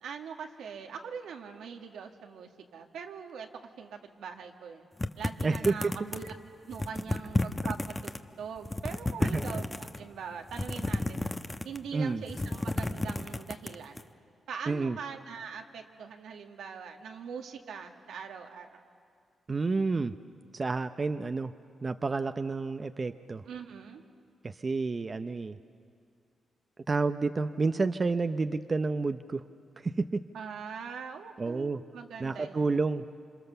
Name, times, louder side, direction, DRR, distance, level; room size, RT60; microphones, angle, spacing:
voice 1, 0.0-3.5 3.8-4.9 5.2-6.3 6.7-11.3 11.6-14.1 14.5-18.8 23.5-24.0 30.3-32.8, right 6 dB, 90° right, 3 dB, 1.9 m, -42 dB
sound 1, 5.0-6.4 6.7-8.2 8.6-10.0 10.5-11.9 12.2-14.0, left 2 dB, 20° left, 1.1 m, -32 dB
voice 2, 5.4-5.9 9.2-9.4 11.9-12.2 14.7-15.0 19.5-20.1 20.5-21.5 21.8-23.4 24.4-25.6 26.9-29.4 29.8-30.2 31.4-31.8 32.2-33.0, right 3 dB, 35° right, 9 dB, 0.7 m, -29 dB
28.0 x 26.0 x 6.9 m, 2.3 s
cardioid pair, 75°, 0 cm